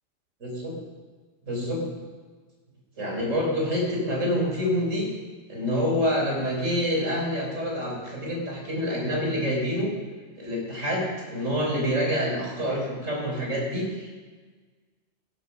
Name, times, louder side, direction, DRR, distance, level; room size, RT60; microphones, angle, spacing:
voice 1, 0.4-0.7 1.5-1.9 3.0-5.1 5.5-9.9 10.4-14.2, equal, 90° right, -1 dB, 4.5 m, -27 dB
16.5 x 9.6 x 5.9 m, 1.4 s
omnidirectional pair, 1.3 m